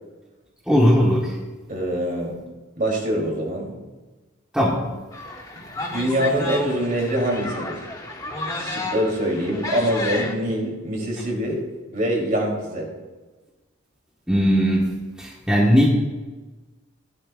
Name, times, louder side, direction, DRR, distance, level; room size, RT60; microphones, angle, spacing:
voice 1, 0.6-1.4 4.5-4.8 14.3-14.9 15.2-15.9, equal, 5° right, -4 dB, 1.4 m, -18 dB
voice 2, 1.7-2.4 2.8-3.7 5.9-7.8 8.5-11.7 11.9-12.9, equal, 40° right, -1 dB, 3.3 m, -24 dB
sound 1, 5.1-10.3, left 2 dB, 15° left, 1.3 m, -32 dB
16.0 x 12.0 x 2.5 m, 1.2 s
head